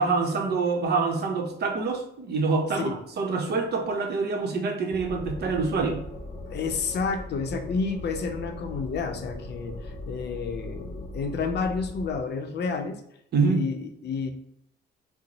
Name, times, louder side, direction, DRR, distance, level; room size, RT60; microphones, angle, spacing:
voice 1, 0.0-6.0 13.3-13.6, right 4 dB, 55° right, 4 dB, 0.7 m, -26 dB
sound 1, 4.9-12.2, left 1 dB, 35° left, 0.9 m, -39 dB
voice 2, 6.5-13.0 13.4-14.3, left 5 dB, 60° left, 6 dB, 0.5 m, -30 dB
3.8 x 2.0 x 2.9 m, 0.76 s
cardioid pair, 90°, 20 cm